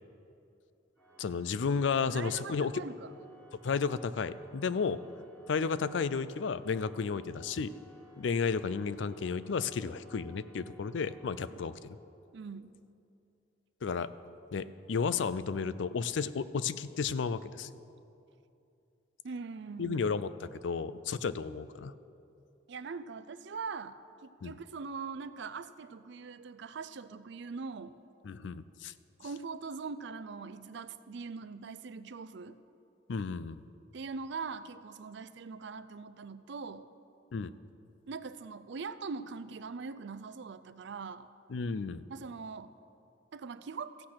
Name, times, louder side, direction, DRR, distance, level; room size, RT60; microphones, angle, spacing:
Organ, 1.0-11.9, left 1 dB, 10° left, 2.3 m, -58 dB
voice 1, 1.2-2.7 3.6-5.0 5.5-7.7 8.2-12.0 13.8-14.1 14.5-17.7 19.8-21.9 24.4-24.5 28.2-28.9 33.1-33.6 37.3-37.5 41.5-42.0, left 5 dB, 70° left, 15 dB, 0.4 m, -33 dB
voice 2, 2.1-3.1 11.5-11.6 12.3-12.8 19.2-20.0 22.7-28.0 29.2-32.6 33.9-36.9 38.1-41.3 42.1-42.7 43.3-43.9, right 4 dB, 65° right, 14 dB, 0.5 m, -42 dB
14.5 x 8.7 x 5.8 m, 2.6 s
head